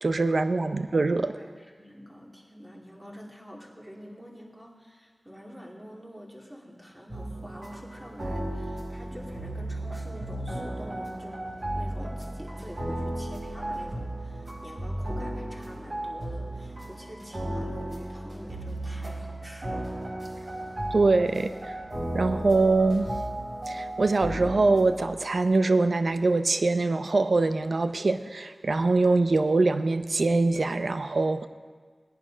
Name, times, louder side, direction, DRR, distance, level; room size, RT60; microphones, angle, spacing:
voice 1, 0.0-1.3 20.9-21.7 22.1-23.1 23.7-31.5, right 3 dB, 70° right, 10 dB, 0.6 m, -23 dB
voice 2, 1.2-19.9, equal, 10° right, -2 dB, 2.5 m, -46 dB
sound 1, 7.1-25.1, right 1 dB, 50° right, 4.0 m, -35 dB
17.5 x 10.5 x 5.1 m, 1.5 s
wide cardioid pair, 75°, 0 cm